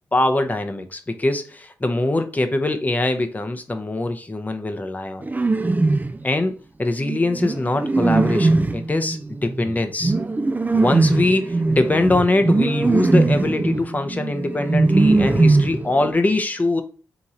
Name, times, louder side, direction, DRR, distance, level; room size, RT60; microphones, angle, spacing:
voice 1, 0.1-5.3 6.2-10.1 10.7-16.8, left 2 dB, 20° left, 0.8 m, -22 dB
sound 1, 5.2-6.2 6.9-16.1, right 3 dB, 20° right, 0.5 m, -20 dB
3.6 x 3.0 x 4.1 m
supercardioid pair, 50°, 8 cm